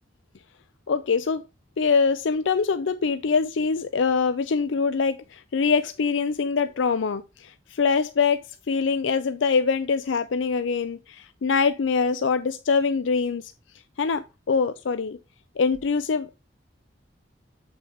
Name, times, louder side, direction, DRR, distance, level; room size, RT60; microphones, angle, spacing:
voice 1, 0.9-1.4 1.8-13.5 14.0-15.2 15.6-16.4, left 5 dB, 85° left, 0.5 m, -24 dB
7.7 x 6.1 x 3.5 m
head